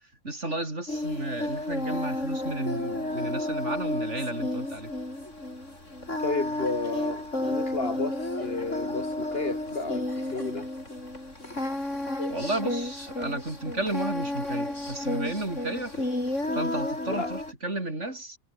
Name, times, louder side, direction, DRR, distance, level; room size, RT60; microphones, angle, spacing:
voice 1, 0.2-4.9 12.3-16.1 16.5-18.4, right 2 dB, 60° right, 5.4 m, -33 dB
Singing, 0.9-17.5, left 1 dB, 65° left, 8.0 m, -32 dB
voice 2, 6.2-10.7 17.1-17.3, left 3 dB, 45° left, 2.7 m, -32 dB
omnidirectional pair, 1.4 m